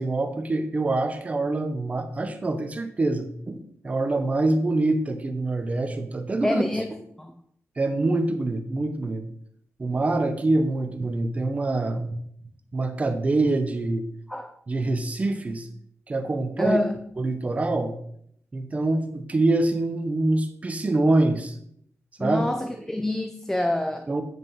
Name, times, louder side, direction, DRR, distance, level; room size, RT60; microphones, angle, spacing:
voice 1, 0.0-6.6 7.8-9.3 9.8-12.2 12.7-14.0 14.7-15.7 16.1-16.8 17.2-18.0 18.5-21.6 22.2-22.4 24.1-24.2, right 2 dB, 25° right, 0.9 m, -25 dB
voice 2, 6.4-6.8 7.2-7.3 14.3-14.5 16.6-17.0 22.2-24.1, left 1 dB, 5° left, 0.5 m, -26 dB
9.4 x 5.3 x 4.8 m
wide cardioid pair, 165°, 5 cm